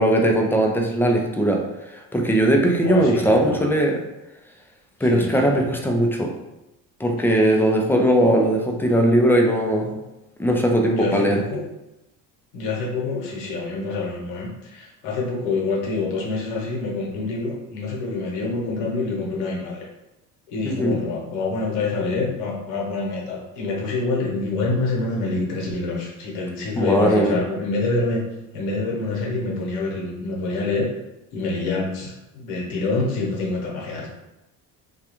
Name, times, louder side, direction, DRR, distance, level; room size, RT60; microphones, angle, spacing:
voice 1, 0.0-1.6 1.9-3.9 5.0-6.3 7.0-9.9 10.4-11.4 20.7-20.9 26.8-27.4, right 1 dB, 5° left, 1 dB, 0.3 m, -19 dB
voice 2, 2.8-3.6 5.0-5.9 7.2-7.6 10.9-11.7 12.5-19.8 20.5-28.2 28.5-30.9 31.3-34.1, left 3 dB, 85° left, -2 dB, 0.9 m, -26 dB
2.3 x 2.3 x 2.9 m, 0.95 s
supercardioid pair, 80°, 40 cm